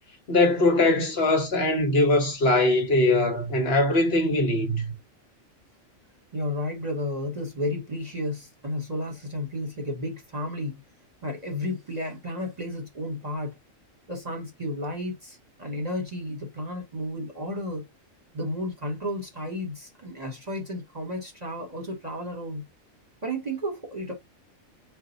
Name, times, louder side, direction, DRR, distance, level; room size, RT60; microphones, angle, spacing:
voice 1, 0.3-4.8, left 2 dB, 50° left, 1.2 m, -21 dB
voice 2, 6.3-10.8 11.2-13.5 14.1-17.8 18.3-22.6 23.2-24.1, left 1 dB, 35° right, 0.9 m, -32 dB
4.1 x 2.2 x 3.8 m
omnidirectional pair, 1.4 m